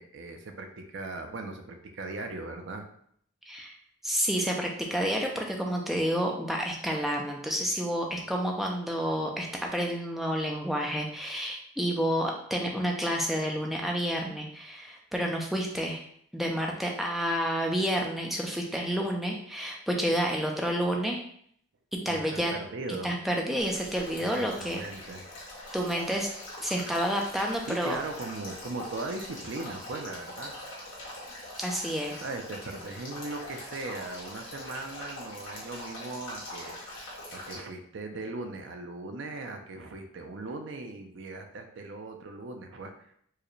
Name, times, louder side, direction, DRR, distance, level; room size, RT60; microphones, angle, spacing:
voice 1, 0.0-2.9 22.0-23.1 24.2-25.3 26.8-26.9 27.7-30.6 32.1-36.8 37.3-43.1, right 2 dB, 65° right, 5 dB, 0.5 m, -39 dB
voice 2, 4.0-16.0 16.3-21.2 21.9-22.5 23.0-24.8 25.7-26.3 26.6-28.0 31.6-32.2, equal, ahead, 0 dB, 0.4 m, -29 dB
Male speech man speaking / Stream / Trickle dribble, 23.6-37.5, left 1 dB, 60° left, 1.5 m, -43 dB
4.6 x 2.1 x 3.1 m, 0.67 s
head